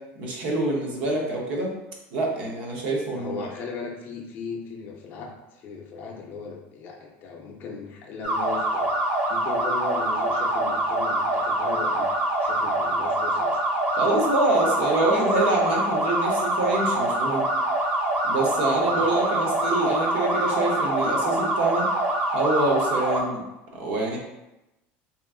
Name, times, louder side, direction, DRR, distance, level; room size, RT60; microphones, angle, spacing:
voice 1, 0.2-1.8 2.1-3.4 13.9-17.5 18.3-21.9 22.3-23.4 23.7-24.2, right 2 dB, 75° right, -1 dB, 0.9 m, -25 dB
voice 2, 3.1-8.9 9.3-12.1 12.4-13.6 18.9-19.1 19.3-19.5, left 5 dB, 35° left, -1 dB, 0.5 m, -37 dB
sound 1, 8.2-23.2, right 1 dB, 25° right, 0.6 m, -25 dB
3.0 x 2.4 x 3.6 m, 0.95 s
cardioid pair, 165°, 6 cm